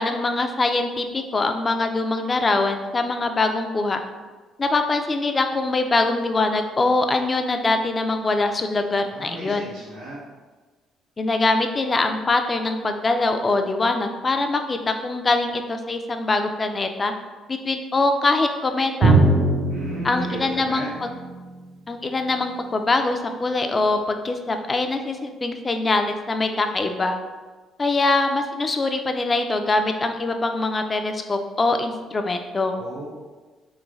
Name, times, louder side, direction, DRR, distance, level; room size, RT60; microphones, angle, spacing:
voice 1, 0.0-4.0 4.6-9.7 11.2-17.1 17.5-19.2 20.0-21.1 21.9-27.2 27.8-32.8, left 3 dB, 35° left, 6 dB, 0.3 m, -23 dB
voice 2, 9.1-10.2 19.7-20.9 32.7-33.1, right 1 dB, 85° right, -6 dB, 1.2 m, -35 dB
Drum, 19.0-22.5, right 2 dB, 60° right, 0.5 m, -22 dB
3.2 x 2.2 x 2.3 m, 1.3 s
supercardioid pair, 70°, 0 cm